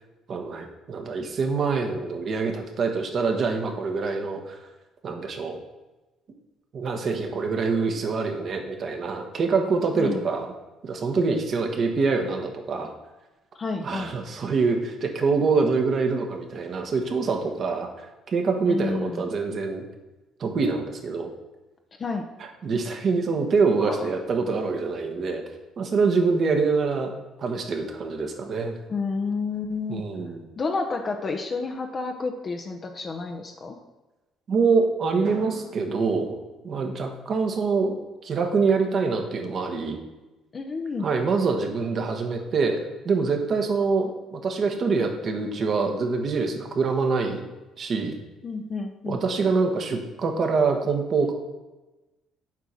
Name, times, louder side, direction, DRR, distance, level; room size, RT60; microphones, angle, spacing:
voice 1, 0.3-4.6 5.0-5.6 6.7-10.5 10.8-12.9 13.8-19.8 20.4-21.3 22.6-25.4 25.8-27.1 27.4-28.8 29.9-30.4 34.5-36.4 36.6-38.0 38.2-40.0 41.0-42.8 43.0-47.4 47.8-48.2 49.1-51.3, right 4 dB, 55° right, 4 dB, 1.4 m, -25 dB
voice 2, 9.9-10.3 13.5-14.1 18.7-19.3 22.0-22.3 23.8-24.1 28.9-30.0 30.6-33.8 40.5-41.1 48.4-49.2, left 4 dB, 40° left, 3 dB, 0.8 m, -30 dB
Drum, 35.2-37.5, right 4 dB, 70° right, 1.7 m, -46 dB
7.4 x 4.8 x 5.7 m, 1.1 s
hypercardioid pair, 60°, 0 cm